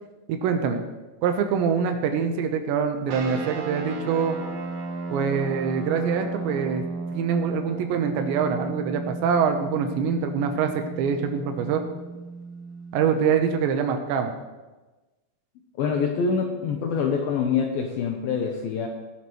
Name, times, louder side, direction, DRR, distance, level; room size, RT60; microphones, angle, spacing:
voice 1, 0.3-0.8 1.2-4.4 5.1-6.8 7.1-11.8 12.9-14.3, right 6 dB, 80° right, 6 dB, 3.1 m, -24 dB
sound 1, 3.1-13.7, right 3 dB, 65° right, 2.7 m, -34 dB
voice 2, 15.8-18.9, left 6 dB, 75° left, 2 dB, 2.2 m, -25 dB
18.5 x 10.5 x 3.2 m, 1.2 s
omnidirectional pair, 5.3 m